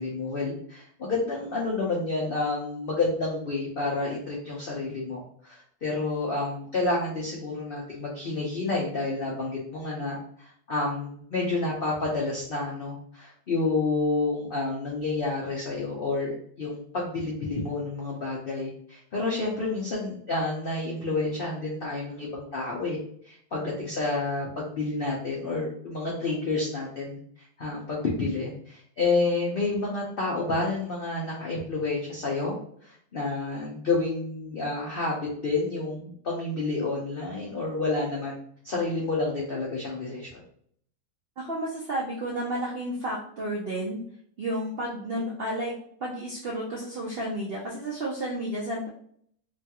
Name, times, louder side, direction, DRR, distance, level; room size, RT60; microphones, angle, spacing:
voice 1, 0.0-23.0 23.2-27.2 27.6-32.6 32.8-38.3 38.6-40.4, left 3 dB, 70° left, -4 dB, 0.5 m, -29 dB
voice 2, 41.4-44.0 44.4-45.8 46.0-48.9, right 1 dB, 70° right, -4 dB, 0.5 m, -31 dB
3.0 x 2.3 x 2.8 m, 0.63 s
omnidirectional pair, 1.7 m